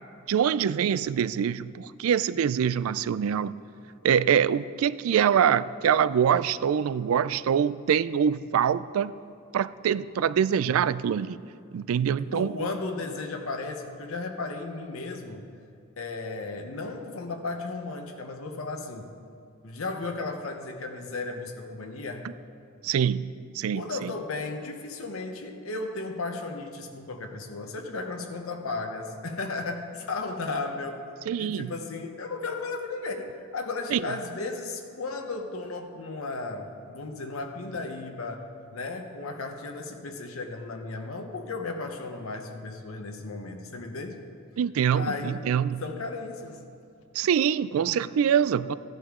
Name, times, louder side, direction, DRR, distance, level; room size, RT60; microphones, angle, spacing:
voice 1, 0.3-3.5 4.0-9.1 9.5-11.4 11.7-12.5 22.8-24.1 31.3-31.7 33.9-34.0 44.6-45.8 47.2-48.7, right 8 dB, 80° right, 16 dB, 0.3 m, -24 dB
voice 2, 12.3-15.5 16.0-19.2 19.6-22.3 23.7-31.0 31.4-44.2 44.9-45.5 45.8-46.6, left 3 dB, 80° left, 4 dB, 0.9 m, -35 dB
15.0 x 10.5 x 3.7 m, 2.5 s
head